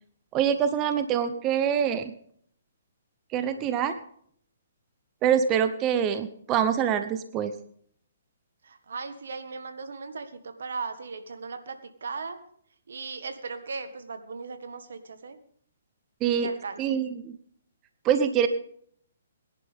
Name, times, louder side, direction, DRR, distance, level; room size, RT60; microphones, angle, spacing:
voice 1, 0.3-2.0 3.3-4.0 5.2-7.5 16.2-16.5 16.8-17.4 18.0-18.5, right 8 dB, 25° right, 10 dB, 0.7 m, -25 dB
voice 2, 8.6-12.4 12.9-15.4 16.3-17.0, right 4 dB, 75° right, 10 dB, 1.6 m, -37 dB
21.5 x 11.0 x 3.6 m, 0.63 s
hypercardioid pair, 150°, 0 cm